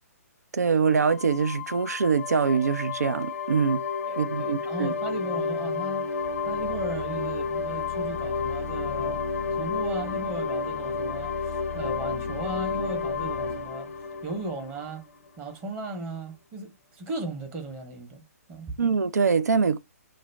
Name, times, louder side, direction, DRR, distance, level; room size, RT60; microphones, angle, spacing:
voice 1, 0.5-3.8 4.2-4.9 18.8-19.8, right 5 dB, 90° right, 0.4 m, -24 dB
sound 1, 0.8-15.3, left 5 dB, 65° left, 0.5 m, -31 dB
voice 2, 4.1-6.1 6.4-9.2 9.6-13.9 14.2-15.0 15.4-18.2 18.5-18.8, right 2 dB, 25° right, 0.8 m, -36 dB
2.4 x 2.0 x 3.1 m
hypercardioid pair, 135°, 8 cm